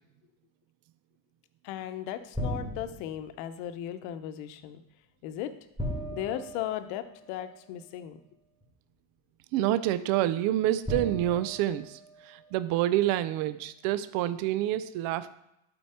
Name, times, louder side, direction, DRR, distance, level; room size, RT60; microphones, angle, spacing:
voice 1, 1.6-4.8 5.2-5.6 6.1-8.2, left 11 dB, 65° left, 10 dB, 0.9 m, -36 dB
sound 1, 2.3-3.3 5.8-7.4 8.6-8.7 10.8-12.6, equal, 10° right, 2.4 m, -37 dB
voice 2, 9.5-12.0 12.3-15.4, right 13 dB, 55° right, 13 dB, 0.6 m, -27 dB
11.5 x 4.5 x 4.4 m, 0.86 s
supercardioid pair, 120°, 41 cm